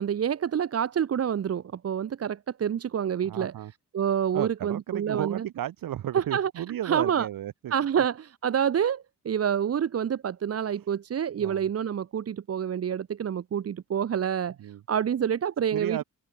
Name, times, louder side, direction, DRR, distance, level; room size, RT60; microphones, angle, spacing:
voice 1, 0.0-3.5 3.9-5.5 6.1-7.3 7.7-16.0, right 8 dB, 45° right, 1.5 m, -28 dB
voice 2, 3.2-3.7 4.3-8.0 11.4-11.7 14.6-14.8 15.7-16.0, right 12 dB, 90° right, 3.0 m, -34 dB
open air
wide cardioid pair, 165°, 33 cm